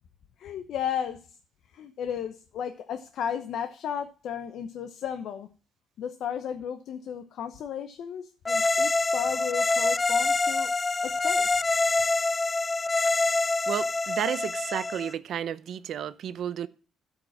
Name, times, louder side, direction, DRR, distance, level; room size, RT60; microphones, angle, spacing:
voice 1, 0.4-1.4 1.7-5.5 6.0-10.7 11.0-11.7, left 8 dB, 75° left, 0.8 m, -34 dB
sound 1, 8.4-15.1, left 3 dB, 25° left, 0.4 m, -26 dB
voice 2, 13.7-16.7, right 9 dB, 70° right, 0.7 m, -32 dB
12.5 x 5.3 x 6.0 m
cardioid pair, 90°, 0 cm